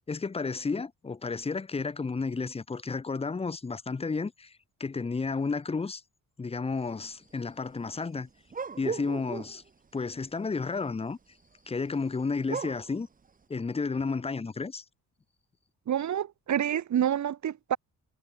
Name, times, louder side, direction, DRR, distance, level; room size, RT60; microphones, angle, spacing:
voice 1, 0.1-4.5 4.8-6.0 6.4-8.3 8.8-9.6 9.9-11.2 11.7-13.1 13.5-14.8, left 4 dB, 15° left, 0.9 m, -32 dB
sound 1, 8.5-9.7 12.4-13.0, right 5 dB, 25° right, 1.1 m, -35 dB
voice 2, 15.9-17.8, right 10 dB, 55° right, 1.7 m, -28 dB
wide cardioid pair, 160°, 35 cm